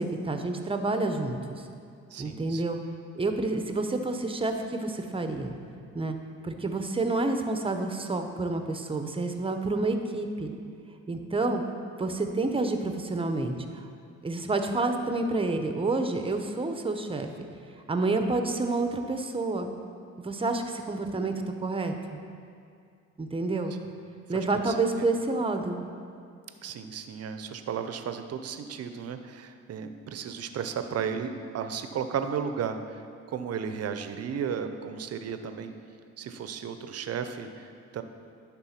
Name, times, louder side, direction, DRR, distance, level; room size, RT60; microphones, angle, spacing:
voice 1, 0.0-1.6 2.2-2.8 3.2-5.6 5.9-6.2 6.4-10.5 11.1-11.6 12.0-13.8 14.2-17.3 17.9-19.7 20.2-22.2 23.2-23.7 24.3-25.8, right 2 dB, 20° right, 6 dB, 0.7 m, -29 dB
voice 2, 2.1-2.6 24.6-25.1 26.6-35.7 36.2-38.0, right 7 dB, 55° right, 8 dB, 0.6 m, -34 dB
11.0 x 3.6 x 5.7 m, 2.4 s
cardioid pair, 90°, 30 cm